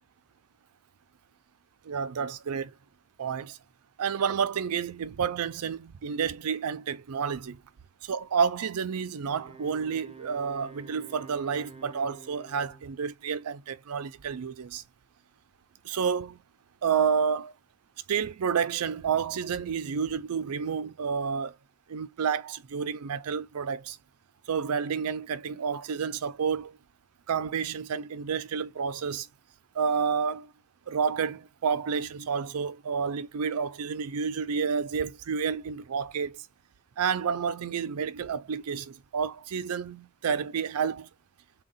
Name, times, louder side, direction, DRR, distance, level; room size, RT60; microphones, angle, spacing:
voice 1, 1.8-2.7 3.2-3.6 4.0-7.6 8.0-14.8 15.8-16.4 16.8-17.5 18.1-21.5 21.9-24.0 24.5-26.8 27.3-29.3 29.7-30.5 30.9-36.5 37.0-41.1, right 6 dB, 90° right, 0.5 m, -30 dB
Wind instrument woodwind instrument, 9.2-13.0, right 4 dB, 30° right, 0.6 m, -50 dB
3.6 x 2.3 x 4.0 m
head